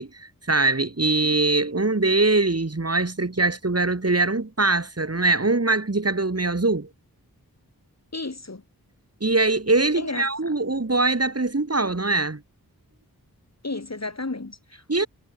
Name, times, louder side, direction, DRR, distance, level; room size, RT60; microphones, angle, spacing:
voice 1, 0.0-6.9 9.2-12.4 14.9-15.1, right 2 dB, 40° right, 3.8 m, -22 dB
voice 2, 8.1-8.6 10.0-10.3 13.6-15.1, left 3 dB, 45° left, 4.2 m, -33 dB
wide cardioid pair, 55°, 38 cm